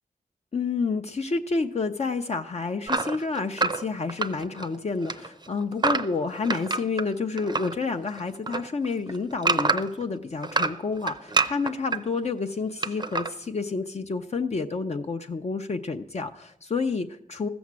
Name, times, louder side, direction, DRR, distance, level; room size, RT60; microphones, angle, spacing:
voice 1, 0.5-17.5, left 4 dB, 45° left, 5 dB, 0.6 m, -29 dB
sound 1, 2.9-4.8 5.0-7.7 8.1-10.0 10.4-12.0 12.8-13.3, right 3 dB, 30° right, 0.6 m, -27 dB
14.5 x 7.1 x 7.4 m, 0.75 s
wide cardioid pair, 100°, 15 cm